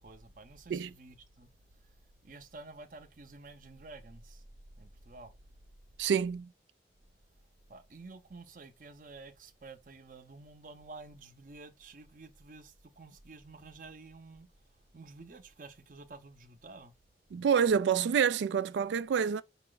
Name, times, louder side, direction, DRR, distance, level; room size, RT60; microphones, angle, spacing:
voice 1, 0.0-1.5 2.2-4.4 4.8-5.3 7.7-14.5 14.9-16.9, right 3 dB, 50° right, 0.7 m, -50 dB
voice 2, 6.0-6.5 17.3-19.4, right 7 dB, 85° right, 0.3 m, -27 dB
5.4 x 2.2 x 3.8 m
head